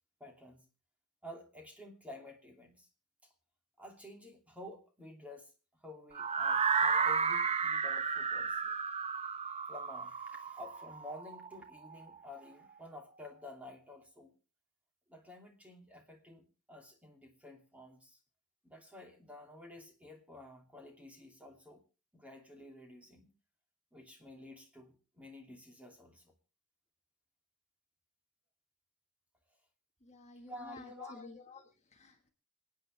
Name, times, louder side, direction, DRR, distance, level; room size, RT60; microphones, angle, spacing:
voice 1, 0.2-0.7 1.2-2.9 3.8-5.5 5.8-8.7 9.7-14.3 15.1-18.2 18.6-21.8 22.1-23.3 23.9-26.3 30.5-31.2, left 1 dB, 5° right, 2 dB, 2.7 m, -51 dB
sound 1, 6.1-12.1, right 5 dB, 30° right, 0.7 m, -33 dB
voice 2, 30.0-32.3, left 4 dB, 30° left, 4 dB, 1.4 m, -51 dB
26.5 x 9.0 x 3.3 m, 0.33 s
head